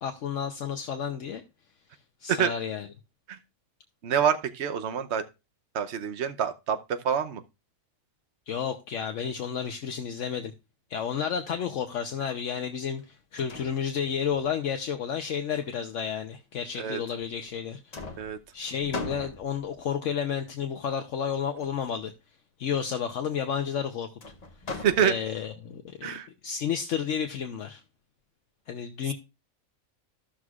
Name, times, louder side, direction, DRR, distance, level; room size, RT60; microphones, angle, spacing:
voice 1, 0.0-1.4 2.2-2.9 8.5-10.5 10.9-18.0 18.5-22.1 22.6-24.1 25.0-26.1 26.4-27.8 28.7-29.1, left 7 dB, 70° left, 1.1 m, -31 dB
voice 2, 4.0-5.2 5.7-7.4 16.8-17.0 18.2-18.4 24.7-25.1 26.0-26.3, right 8 dB, 60° right, 1.0 m, -27 dB
sound 1, 13.0-13.1 13.4-14.4 15.2-16.2 17.2-17.6 17.9-19.9 21.6-22.0 24.2-25.5, left 3 dB, 35° left, 0.8 m, -41 dB
14.5 x 6.2 x 2.4 m
omnidirectional pair, 1.4 m